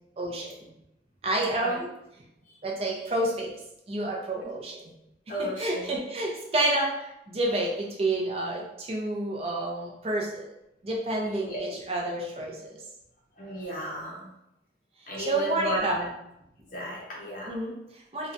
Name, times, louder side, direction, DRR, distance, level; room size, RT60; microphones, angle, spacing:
voice 1, 0.2-0.6 1.2-1.9 2.6-3.5 3.9-4.9 5.4-10.5 10.8-12.8 15.0-16.1 17.4-18.3, right 2 dB, 35° right, -1 dB, 0.5 m, -29 dB
voice 2, 5.3-5.9 11.2-11.8 13.4-14.3 15.1-15.8 16.7-17.5, equal, 45° left, -4 dB, 0.6 m, -34 dB
2.9 x 2.1 x 2.5 m, 0.85 s
head